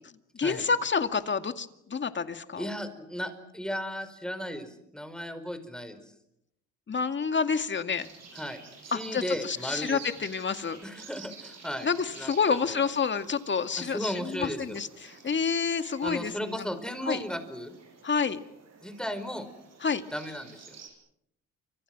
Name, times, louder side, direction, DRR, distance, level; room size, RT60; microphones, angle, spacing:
voice 1, 0.3-2.7 6.9-8.1 8.9-10.8 11.8-16.7 17.1-17.2 18.0-18.4 19.8-20.0, left 5 dB, 40° left, 8 dB, 2.2 m, -29 dB
voice 2, 2.6-6.0 8.3-10.0 10.8-11.9 12.2-12.8 13.8-14.8 16.0-17.7 18.8-19.5 20.1-20.6, equal, 5° left, 9 dB, 5.0 m, -35 dB
sound 1, 7.9-20.9, right 5 dB, 60° right, 7.4 m, -50 dB
29.5 x 26.5 x 6.2 m, 0.80 s
cardioid pair, 90°, 30 cm